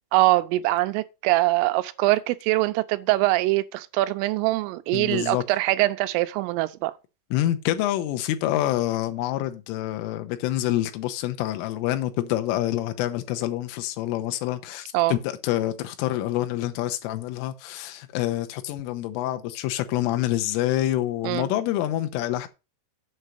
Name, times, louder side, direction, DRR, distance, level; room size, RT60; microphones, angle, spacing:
voice 1, 0.1-6.9 14.9-15.2 21.2-21.5, right 18 dB, 85° right, 3.2 m, -23 dB
voice 2, 4.9-5.4 7.3-22.5, left 14 dB, 85° left, 3.4 m, -27 dB
8.0 x 6.3 x 5.6 m
omnidirectional pair, 5.8 m